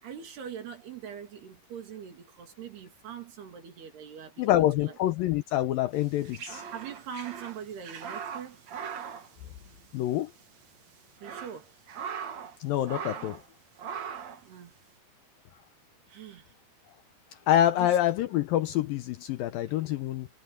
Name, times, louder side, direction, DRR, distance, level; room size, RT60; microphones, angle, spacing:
voice 1, 0.0-5.0 6.7-8.6 11.2-11.7 14.4-14.7 16.1-16.5 17.8-17.9, right 8 dB, 75° right, 5.0 m, -42 dB
voice 2, 4.4-6.6 9.9-10.3 12.6-13.4 17.5-20.3, left 12 dB, 80° left, 2.2 m, -26 dB
sound 1, 6.0-10.1 10.4-10.5 11.0-12.6 12.8-13.4 13.8-14.4, right 7 dB, 50° right, 2.4 m, -40 dB
omnidirectional pair, 4.7 m